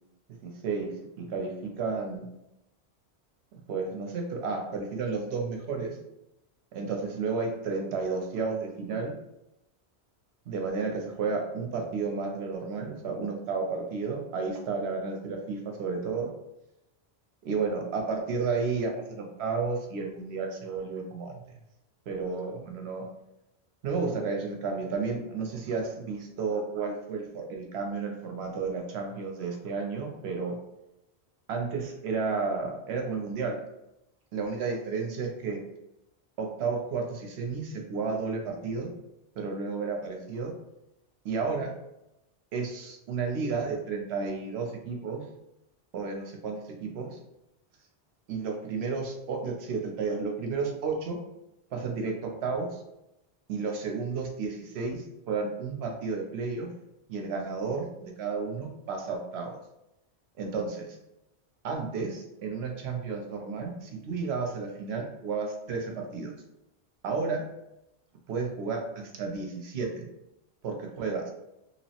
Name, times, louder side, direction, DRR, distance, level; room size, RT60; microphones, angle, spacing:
voice 1, 0.4-0.9 1.2-2.3 3.7-6.0 6.7-9.1 10.5-16.3 17.4-21.4 22.1-23.1 23.8-30.6 31.5-33.6 34.3-35.6 36.4-38.9 39.4-40.5 41.2-41.7 42.5-45.2 45.9-47.2 48.3-51.2 51.7-52.8 53.5-56.7 57.1-59.6 60.4-60.9 61.6-66.3 67.0-67.4 68.3-70.0 70.6-71.3, right 4 dB, 80° right, 2 dB, 0.8 m, -32 dB
2.9 x 2.0 x 2.8 m, 0.88 s
omnidirectional pair, 1.1 m